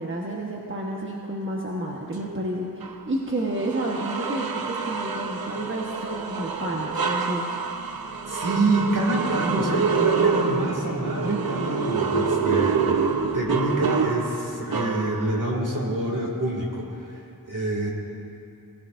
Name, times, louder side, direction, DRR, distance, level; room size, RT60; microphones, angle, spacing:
voice 1, 0.0-7.5, right 1 dB, 35° right, -2 dB, 1.3 m, -30 dB
sound 1, 2.8-3.0 3.6-15.5, right 5 dB, 80° right, 0.8 m, -26 dB
voice 2, 8.3-12.9 13.3-17.9, right 2 dB, 60° right, -1 dB, 2.6 m, -27 dB
20.0 x 15.5 x 2.6 m, 2.6 s
wide cardioid pair, 50°, 36 cm